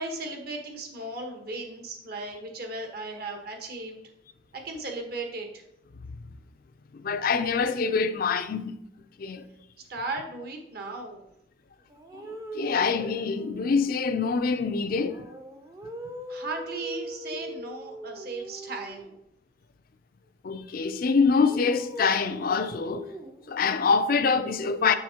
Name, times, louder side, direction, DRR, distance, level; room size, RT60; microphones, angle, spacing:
voice 1, 0.0-4.0 4.5-5.6 9.9-11.2 16.3-19.1, right 2 dB, 55° right, 1.2 m, -36 dB
voice 2, 6.9-8.7 9.2-9.4 12.2-15.2 20.4-23.1 23.5-24.9, left 5 dB, 50° left, 0.4 m, -25 dB
sound 1, 11.9-14.0 14.8-19.2 21.3-23.6, right 1 dB, 20° right, 0.5 m, -41 dB
7.2 x 6.3 x 2.9 m
head